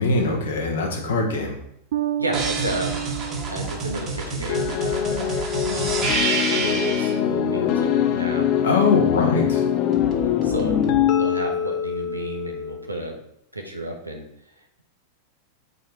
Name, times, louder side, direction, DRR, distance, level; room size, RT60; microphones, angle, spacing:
voice 1, 0.0-1.6 8.6-9.6, left 3 dB, 65° left, 1 dB, 1.3 m, -22 dB
Bass guitar, 1.9-4.6, right 13 dB, 55° right, 0.3 m, -30 dB
voice 2, 2.2-3.0 3.5-5.2 5.6-8.8 10.4-10.8 11.2-13.2 13.5-14.6, right 1 dB, 85° right, 2 dB, 0.9 m, -33 dB
sound 1, 2.3-7.2 9.9-11.0, right 3 dB, 30° right, 1.4 m, -28 dB
sound 2, 4.5-12.9, left 9 dB, 40° left, 0.5 m, -23 dB
4.4 x 4.1 x 5.3 m, 0.76 s
figure-of-eight pair, 90°, 0 cm